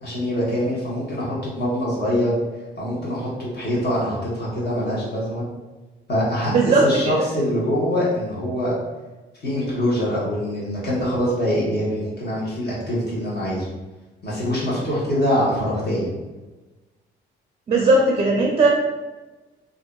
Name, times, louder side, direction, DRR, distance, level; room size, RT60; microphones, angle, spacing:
voice 1, 0.0-2.3 2.8-3.3 3.5-5.4 6.1-8.7 9.4-13.7 14.2-16.1, equal, 55° left, -7 dB, 1.2 m, -24 dB
voice 2, 6.5-6.8 17.7-18.7, right 2 dB, 30° right, -1 dB, 0.4 m, -17 dB
2.6 x 2.5 x 2.2 m, 1.2 s
cardioid pair, 90°, 20 cm